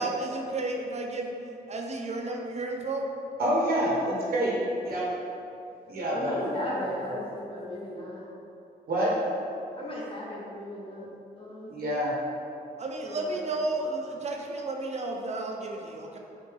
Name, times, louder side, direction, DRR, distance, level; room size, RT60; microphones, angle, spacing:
voice 1, 0.0-1.3 1.7-3.0 12.8-16.2, right 2 dB, 40° right, 1 dB, 0.6 m, -32 dB
voice 2, 3.4-4.6 4.8-5.1 5.9-6.9 8.9-9.1 11.7-12.1, equal, 65° right, -5 dB, 1.2 m, -27 dB
voice 3, 6.1-8.3 9.7-11.1 11.4-11.7 13.0-13.4, left 1 dB, 35° left, -4 dB, 1.2 m, -36 dB
5.1 x 2.7 x 3.5 m, 2.7 s
cardioid pair, 75°, 17 cm